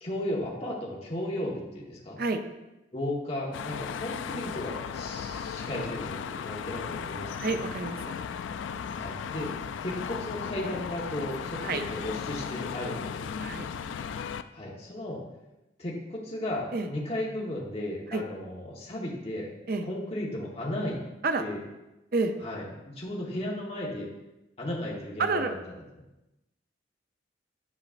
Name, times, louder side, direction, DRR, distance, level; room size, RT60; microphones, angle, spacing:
voice 1, 0.0-2.2 2.9-7.4 8.9-9.5 9.8-13.4 14.5-15.2 15.8-19.5 19.8-21.0 21.4-21.6 22.4-24.1 24.6-25.7, left 1 dB, 30° left, -4 dB, 1.2 m, -35 dB
sound 1, 3.5-14.4, left 7 dB, 80° left, 0.3 m, -36 dB
voice 2, 7.4-8.1 11.6-11.8 13.4-13.7 16.7-16.9 18.1-18.2 19.7-19.9 21.2-21.4 22.1-22.3 25.2-25.5, right 3 dB, 50° right, 7 dB, 0.5 m, -29 dB
9.6 x 5.1 x 2.5 m, 0.96 s
head